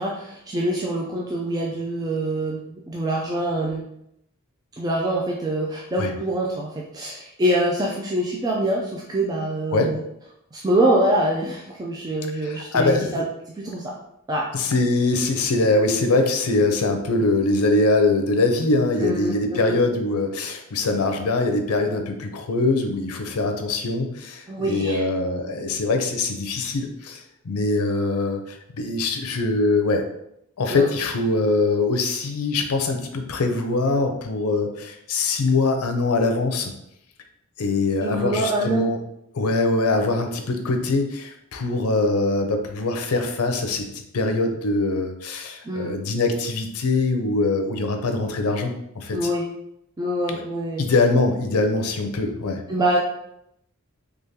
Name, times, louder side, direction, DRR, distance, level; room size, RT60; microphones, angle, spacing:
voice 1, 0.0-3.8 4.8-10.0 10.5-13.3 13.6-13.9 14.3-14.5 19.0-19.8 24.5-25.1 30.7-30.9 38.0-38.8 45.6-45.9 49.1-49.5 50.0-50.8 52.7-53.0, right 1 dB, 15° right, -3 dB, 0.4 m, -25 dB
voice 2, 12.4-13.1 14.5-30.0 30.6-36.7 37.6-39.0 39.3-43.9 44.1-49.3 50.3-50.4 50.8-52.6, left 2 dB, 85° left, 5 dB, 0.6 m, -23 dB
3.6 x 3.3 x 2.7 m, 0.78 s
head